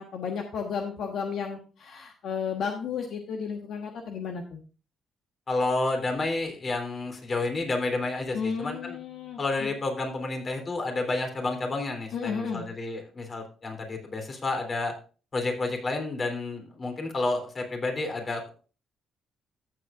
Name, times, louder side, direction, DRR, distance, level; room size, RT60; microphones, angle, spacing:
voice 1, 0.0-4.6 8.3-9.7 12.1-12.6, left 6 dB, 70° left, 3 dB, 1.3 m, -33 dB
voice 2, 5.5-9.0 9.4-14.9 15.3-18.5, left 2 dB, 40° left, 4 dB, 3.2 m, -30 dB
14.0 x 7.8 x 2.5 m, 0.36 s
cardioid pair, 90°, 0 cm